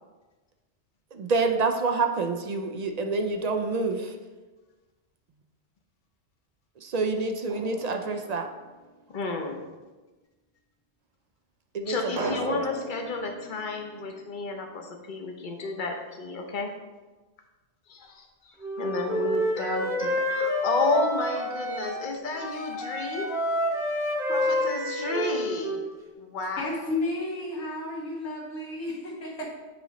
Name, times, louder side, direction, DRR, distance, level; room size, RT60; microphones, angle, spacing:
voice 1, 1.1-4.1 6.8-8.5 11.7-11.9 12.2-12.3, right 3 dB, 55° right, 5 dB, 0.4 m, -27 dB
Drum, 7.5-9.0 12.2-14.9, right 3 dB, 75° right, 1.0 m, -38 dB
voice 2, 9.1-9.6 11.9-16.7 18.4-23.3 24.0-25.8 26.2-26.6, left 3 dB, 50° left, 3 dB, 0.9 m, -31 dB
Wind instrument woodwind instrument, 18.6-22.1 22.4-25.9, equal, 5° right, 0.8 m, -28 dB
voice 3, 26.6-29.5, left 2 dB, 90° left, -4 dB, 1.7 m, -32 dB
8.3 x 3.0 x 4.0 m, 1.2 s
omnidirectional pair, 1.1 m